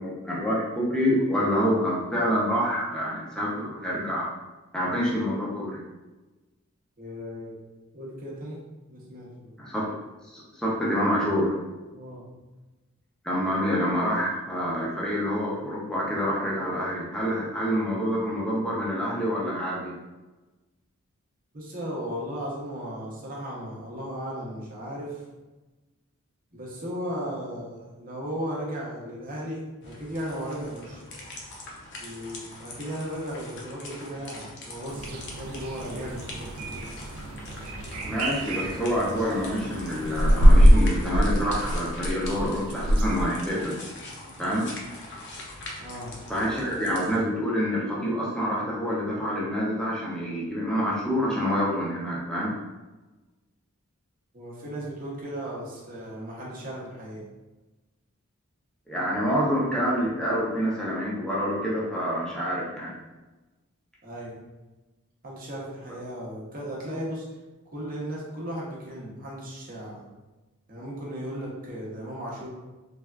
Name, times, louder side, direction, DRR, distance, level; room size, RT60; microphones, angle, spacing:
voice 1, 0.0-4.3 4.7-5.8 9.6-10.0 10.3-11.6 13.2-19.9 38.0-43.8 44.4-44.7 46.3-52.5 58.9-63.0, equal, 5° left, -6 dB, 0.5 m, -27 dB
voice 2, 7.0-7.6 7.9-9.5 11.9-12.3 21.5-25.2 26.5-31.0 32.0-36.8 45.8-46.1 54.3-57.3 64.0-64.4 65.2-67.3 67.7-70.0 70.7-72.5, equal, 40° right, -4 dB, 0.7 m, -36 dB
sound 1, 29.8-47.2, left 2 dB, 50° left, 0.5 m, -42 dB
sound 2, 34.9-43.3, equal, 70° right, 0.4 m, -23 dB
3.3 x 2.3 x 2.3 m, 1.1 s
head